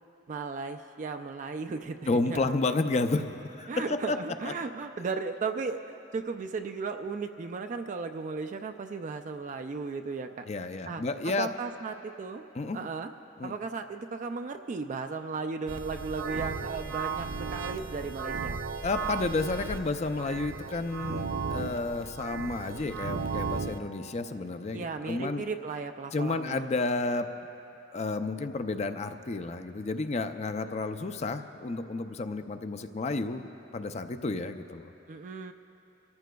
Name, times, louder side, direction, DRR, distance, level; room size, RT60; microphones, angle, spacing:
voice 1, 0.3-2.5 3.7-10.5 10.9-11.0 11.4-12.4 12.7-13.1 13.4-18.6 24.7-26.7 35.1-35.5, right 4 dB, 40° right, 6 dB, 0.4 m, -35 dB
voice 2, 2.1-4.2 4.4-4.5 10.5-11.5 12.5-12.8 13.4-13.5 18.8-25.4 26.1-27.3 27.9-33.5 33.7-34.9, left 3 dB, 35° left, 9 dB, 0.5 m, -31 dB
sound 1, 15.7-23.8, right 5 dB, 85° right, 0.6 m, -35 dB
29.5 x 14.0 x 2.3 m, 2.9 s
head